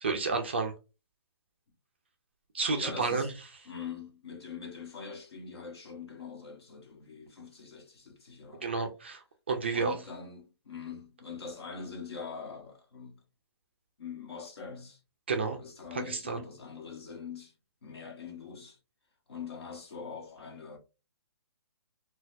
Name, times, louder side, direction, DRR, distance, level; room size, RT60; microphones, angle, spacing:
voice 1, 0.0-0.7 2.5-3.3 8.6-9.2 9.5-9.9 15.3-15.6 15.9-16.4, right 4 dB, 25° right, 0.3 m, -30 dB
voice 2, 2.8-3.3 3.6-8.6 9.7-13.2 14.0-15.0 15.4-17.5 17.8-18.8 19.3-20.8, left 5 dB, 65° left, 1.2 m, -43 dB
4.0 x 2.2 x 2.6 m
hypercardioid pair, 170°, 14 cm